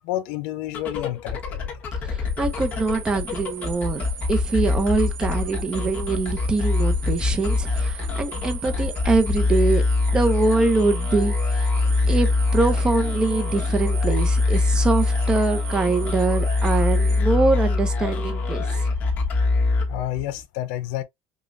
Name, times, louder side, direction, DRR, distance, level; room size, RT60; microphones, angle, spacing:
voice 1, 0.0-1.7 19.9-21.0, left 14 dB, 85° left, 0.6 m, -29 dB
sound 1, 0.6-20.4, left 3 dB, 35° left, 1.3 m, -23 dB
voice 2, 2.0-9.8 10.1-11.7 12.1-18.7, right 3 dB, 15° right, 0.6 m, -24 dB
sound 2, 2.3-17.2, right 9 dB, 85° right, 1.0 m, -39 dB
5.1 x 2.3 x 2.5 m
cardioid pair, 160°, 5 cm